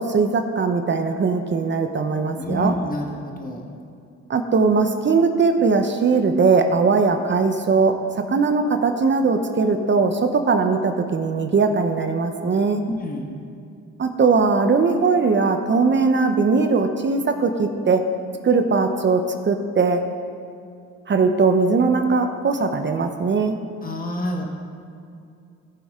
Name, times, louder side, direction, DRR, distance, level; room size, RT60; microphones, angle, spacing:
voice 1, 0.0-2.8 4.3-7.9 8.3-12.8 14.0-18.0 18.4-20.0 21.1-23.6, right 4 dB, 40° right, 6 dB, 0.9 m, -20 dB
voice 2, 2.4-3.7 12.8-13.3 23.8-24.4, equal, 30° left, 1 dB, 1.5 m, -28 dB
18.5 x 6.2 x 3.7 m, 2.4 s
cardioid pair, 90°, 30 cm